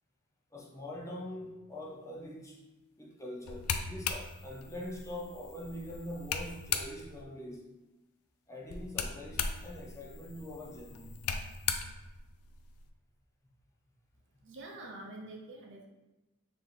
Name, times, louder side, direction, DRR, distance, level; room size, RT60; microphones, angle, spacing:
voice 1, 0.5-2.6 3.0-7.7 8.5-11.2, left 1 dB, 15° left, -4 dB, 0.6 m, -43 dB
sound 1, 3.5-7.2 8.7-12.9, left 6 dB, 70° left, 0.4 m, -38 dB
voice 2, 14.4-15.9, right 2 dB, 55° right, 0 dB, 0.7 m, -46 dB
4.3 x 2.9 x 3.3 m, 1.0 s
head